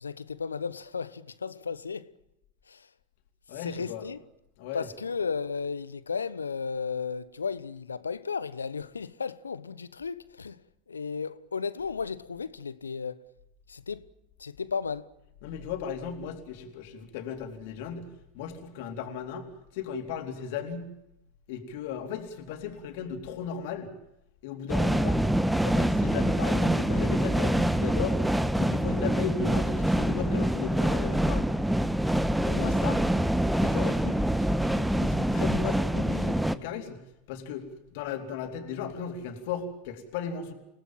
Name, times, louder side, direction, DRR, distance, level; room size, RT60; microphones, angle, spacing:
voice 1, 0.0-2.1 2.7-2.9 3.5-4.2 4.7-10.6 10.9-13.2 13.7-14.1 14.4-15.1, left 5 dB, 85° left, 1.0 m, -34 dB
voice 2, 3.5-4.1 4.6-4.9 15.4-18.1 18.3-19.5 19.7-20.9 21.5-23.9 24.4-25.2 25.5-28.2 28.6-31.5 32.4-33.0 33.6-37.0 37.3-40.5, left 7 dB, 60° left, 3.9 m, -36 dB
sound 1, 24.7-36.6, right 1 dB, 5° right, 1.3 m, -25 dB
29.5 x 18.0 x 7.5 m
figure-of-eight pair, 80°, 0 cm